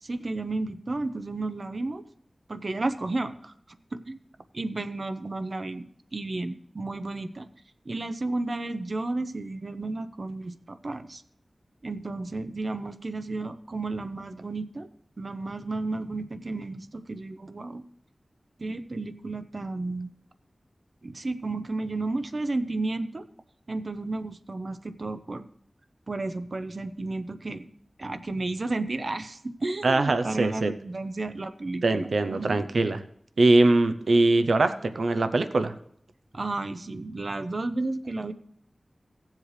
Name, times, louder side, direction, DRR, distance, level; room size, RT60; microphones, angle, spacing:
voice 1, 0.0-2.0 2.5-3.5 3.9-4.2 4.5-5.9 6.1-7.5 7.9-11.2 11.8-14.9 15.2-17.8 18.6-20.1 21.0-23.3 23.7-25.5 26.1-27.7 28.0-32.6 36.3-38.3, right 2 dB, 50° right, 10 dB, 0.7 m, -32 dB
voice 2, 29.8-30.7 31.8-33.0 33.4-35.7, right 2 dB, 90° right, 10 dB, 0.6 m, -22 dB
16.5 x 7.5 x 3.2 m, 0.67 s
wide cardioid pair, 80°, 0 cm